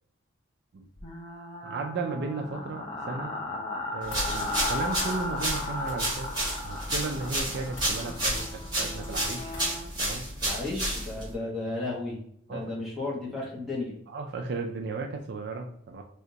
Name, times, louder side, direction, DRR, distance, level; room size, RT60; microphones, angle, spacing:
sound 1, 1.0-9.9, left 2 dB, 25° left, 0.4 m, -36 dB
voice 1, 1.6-3.3 3.9-6.3 6.6-9.6 10.0-10.2 12.5-12.7 14.1-16.0, right 3 dB, 50° right, 3 dB, 0.3 m, -35 dB
sound 2, 4.1-4.3 5.8-6.0 7.7-8.0 9.5-9.8, left 1 dB, 70° left, 1.2 m, -44 dB
sound 3, 4.1-11.3, right 1 dB, 20° right, 1.5 m, -31 dB
voice 2, 10.4-12.2 12.5-13.9, left 2 dB, ahead, -5 dB, 1.0 m, -33 dB
3.3 x 2.8 x 2.7 m, 0.68 s
head